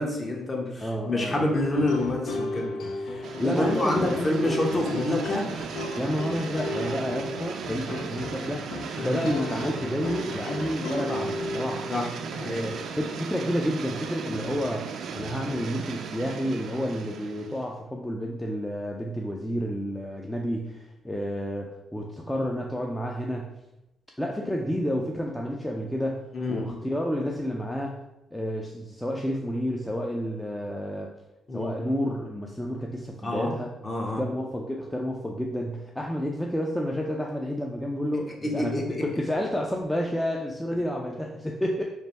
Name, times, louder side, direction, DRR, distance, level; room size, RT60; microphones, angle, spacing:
voice 1, 0.0-2.7 3.1-5.5 9.0-9.2 11.9-12.7 26.3-26.8 31.5-31.7 33.2-33.5 33.8-34.2 38.4-39.1, left 1 dB, 30° left, 1 dB, 0.8 m, -27 dB
voice 2, 0.8-1.4 3.4-4.6 5.9-11.9 12.5-23.5 24.2-26.2 26.5-28.0 28.3-31.1 31.5-33.7 34.2-41.8, equal, 5° left, -1 dB, 0.4 m, -30 dB
sound 1, 1.5-12.0, left 2 dB, 80° left, 0.6 m, -34 dB
sound 2, 3.2-17.7, right 6 dB, 65° right, 0.3 m, -37 dB
3.3 x 2.5 x 4.1 m, 0.92 s
cardioid pair, 90°, 0 cm